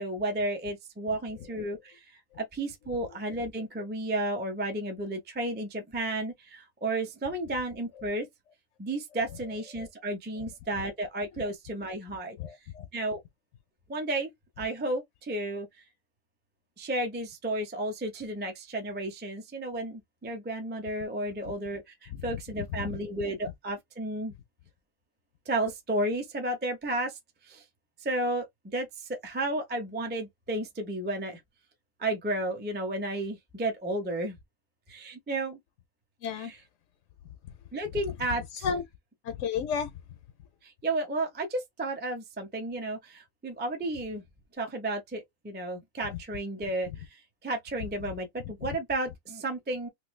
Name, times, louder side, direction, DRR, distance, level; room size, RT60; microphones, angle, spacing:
voice 1, 0.0-2.0 2.4-8.3 8.8-12.4 12.9-13.2 13.9-14.3 14.6-15.7 16.8-24.3 25.5-27.6 28.0-28.5 28.7-31.4 32.0-34.4 34.9-35.6 36.4-36.5 37.7-38.7 40.6-44.2 44.6-49.9, right 1 dB, 15° right, 0.4 m, -32 dB
voice 2, 12.4-12.9 22.1-22.2 22.8-23.0 36.2-36.5 38.6-38.8 39.2-39.9 48.6-48.8, left 6 dB, 70° left, 0.8 m, -32 dB
3.1 x 2.6 x 3.1 m
omnidirectional pair, 1.5 m